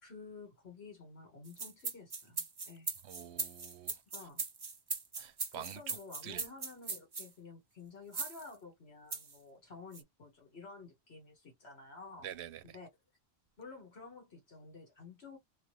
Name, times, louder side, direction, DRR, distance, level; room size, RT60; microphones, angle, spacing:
voice 1, 0.0-2.9 4.1-4.4 5.5-12.3 12.6-12.9 13.6-15.4, left 4 dB, 75° left, 1.8 m, -51 dB
sound 1, 1.5-7.3 8.1-8.5 9.1-9.4 9.9-10.0, right 4 dB, 30° right, 0.5 m, -39 dB
voice 2, 3.0-3.9 5.2-5.8 6.2-6.4 12.2-12.6, right 11 dB, 85° right, 0.9 m, -46 dB
3.0 x 2.4 x 3.0 m
omnidirectional pair, 1.1 m